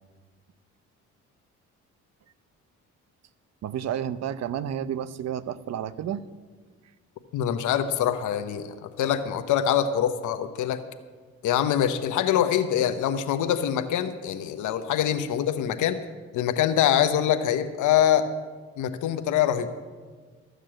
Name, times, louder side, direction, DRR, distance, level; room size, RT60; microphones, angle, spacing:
voice 1, 3.6-6.2, right 9 dB, 60° right, 15 dB, 0.6 m, -31 dB
voice 2, 7.3-8.7 9.0-10.8 11.4-16.0 16.3-18.3 18.8-19.7, left 10 dB, 80° left, 9 dB, 0.8 m, -24 dB
13.5 x 6.6 x 7.6 m, 1.5 s
cardioid pair, 90°, 30 cm